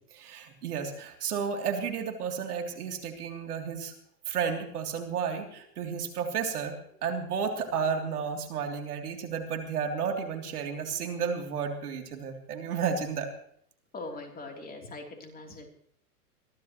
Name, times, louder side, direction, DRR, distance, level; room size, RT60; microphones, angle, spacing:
voice 1, 0.2-3.9 4.2-13.3, right 6 dB, 70° right, 3 dB, 3.4 m, -32 dB
voice 2, 13.9-15.7, left 2 dB, 20° left, 2 dB, 3.4 m, -41 dB
23.0 x 15.5 x 3.2 m, 0.65 s
hypercardioid pair, 115°, 47 cm